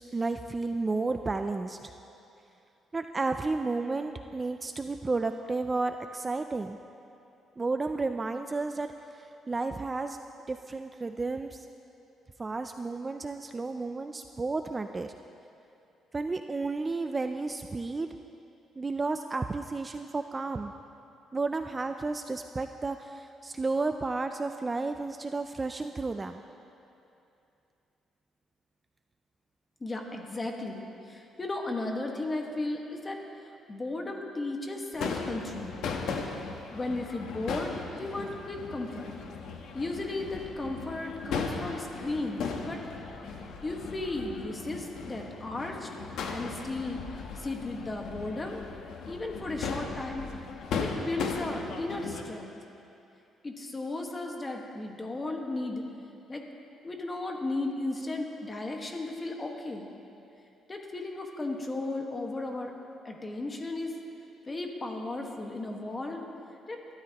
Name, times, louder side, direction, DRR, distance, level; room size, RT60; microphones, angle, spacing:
voice 1, 0.0-1.9 2.9-6.8 7.6-8.9 9.1-10.2 10.5-11.7 12.4-15.1 16.1-18.1 18.8-20.7 21.3-26.4, right 3 dB, 20° right, 7 dB, 0.4 m, -32 dB
voice 2, 29.8-33.2 33.7-35.8 36.3-36.4 36.7-39.1 39.7-42.8 43.6-45.9 46.3-47.0 47.3-48.6 49.1-50.3 50.8-52.5 53.4-55.8 56.3-56.4 56.8-59.9 60.7-62.7 63.0-63.9 64.5-66.2 66.7-66.8, left 2 dB, 20° left, 2 dB, 1.5 m, -35 dB
Crowd / Fireworks, 34.9-52.2, left 5 dB, 80° left, 1.1 m, -37 dB
21.5 x 13.0 x 3.0 m, 2.8 s
cardioid pair, 120°, 0 cm